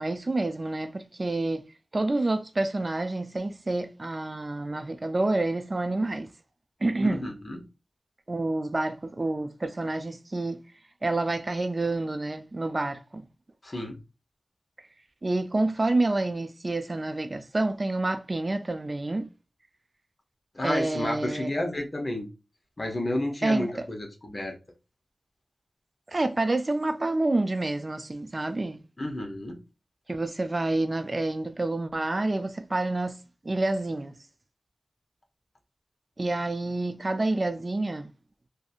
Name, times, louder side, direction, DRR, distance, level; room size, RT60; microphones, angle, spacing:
voice 1, 0.0-1.6 1.9-6.3 6.8-7.2 8.3-10.6 11.0-13.3 15.2-19.3 20.6-21.5 23.4-23.7 26.1-28.8 30.1-33.2 33.4-34.2 36.2-38.1, right 2 dB, 45° right, 0.4 m, -28 dB
voice 2, 7.1-7.6 13.6-14.0 20.5-22.3 22.8-24.6 29.0-29.6, left 1 dB, 45° left, 0.9 m, -31 dB
2.6 x 2.6 x 2.4 m
cardioid pair, 45°, 0 cm